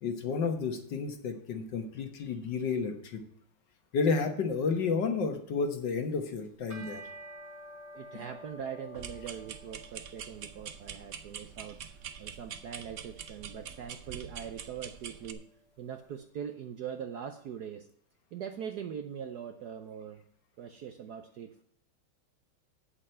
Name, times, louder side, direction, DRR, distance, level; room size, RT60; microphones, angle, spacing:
voice 1, 0.0-3.2 3.9-7.0, left 5 dB, 60° left, 6 dB, 1.7 m, -31 dB
sound 1, 6.5-15.9, equal, 20° right, 1.2 m, -52 dB
voice 2, 7.9-15.4 15.8-17.9 18.3-20.2 20.6-21.6, right 8 dB, 65° right, 7 dB, 1.0 m, -42 dB
sound 2, 8.9-15.3, right 7 dB, 85° right, 0.6 m, -45 dB
8.6 x 7.7 x 5.6 m, 0.66 s
omnidirectional pair, 2.4 m